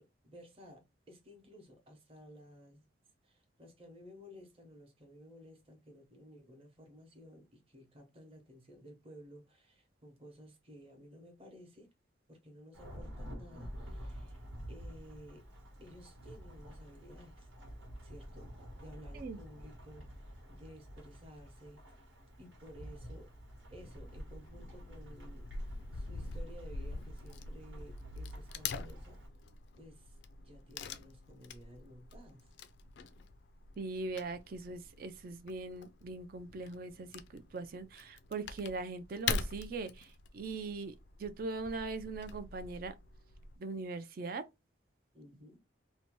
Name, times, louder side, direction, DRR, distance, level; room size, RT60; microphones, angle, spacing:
voice 1, 0.0-2.9 3.2-11.9 12.3-14.4 14.7-15.5 15.8-17.5 18.0-21.8 22.4-23.3 23.7-29.2 29.8-32.5 45.1-45.6, equal, 30° right, 0.9 m, -55 dB
Thunderstorm / Rain, 12.7-29.3, equal, 90° right, 1.2 m, -50 dB
Wood / Tearing, 24.0-43.6, left 4 dB, 70° left, 0.4 m, -44 dB
voice 2, 33.8-40.9 41.2-42.9 43.6-44.4, right 3 dB, 50° right, 0.4 m, -41 dB
2.7 x 2.1 x 3.0 m
head